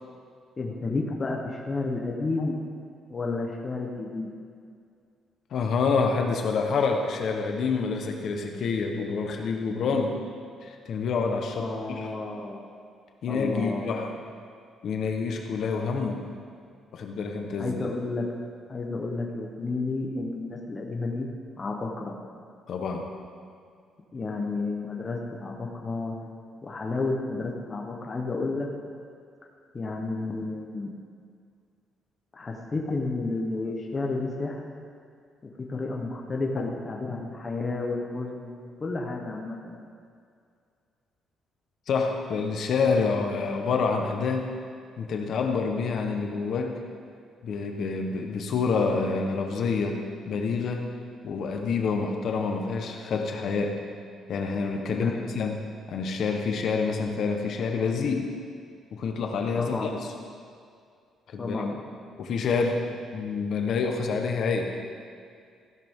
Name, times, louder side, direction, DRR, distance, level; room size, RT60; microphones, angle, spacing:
voice 1, 0.6-2.6 3.1-4.3 11.6-12.6 13.3-13.9 17.6-18.3 18.7-21.3 21.6-22.1 24.1-26.2 26.6-28.7 29.7-30.9 32.3-34.6 35.7-39.8 54.9-55.4 59.6-60.0 61.4-61.8, left 3 dB, 20° left, 0 dB, 0.9 m, -31 dB
voice 2, 5.5-10.2 10.6-12.1 13.2-14.1 14.8-16.2 16.9-17.8 22.7-23.1 36.6-36.7 41.9-44.5 45.0-46.8 47.4-50.0 50.3-50.9 51.2-53.8 54.3-55.6 55.9-58.3 58.9-59.9 61.3-61.6 62.2-64.7, left 4 dB, 50° left, 3 dB, 1.1 m, -27 dB
15.0 x 12.0 x 3.7 m, 2.3 s
cardioid pair, 175°, 0 cm